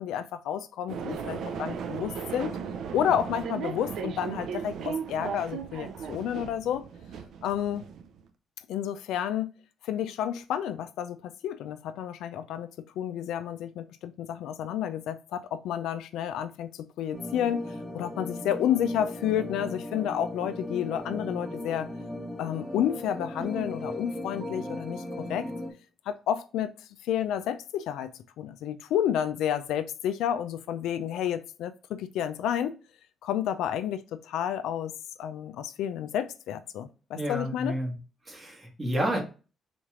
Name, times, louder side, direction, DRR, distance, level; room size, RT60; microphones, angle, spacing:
voice 1, 0.0-2.6 2.9-6.8 7.4-7.8 8.7-9.5 9.8-21.9 22.4-25.5 26.1-26.7 27.0-28.1 28.4-32.8 33.2-34.9 35.2-37.8, left 10 dB, 85° left, 0.4 m, -30 dB
sound 1, 0.9-8.3, right 6 dB, 75° right, 0.5 m, -36 dB
sound 2, 17.1-25.7, left 1 dB, 10° right, 1.3 m, -37 dB
voice 2, 37.1-37.9 38.3-39.2, equal, 25° right, 1.8 m, -30 dB
4.2 x 3.1 x 3.6 m
cardioid pair, 90°, 0 cm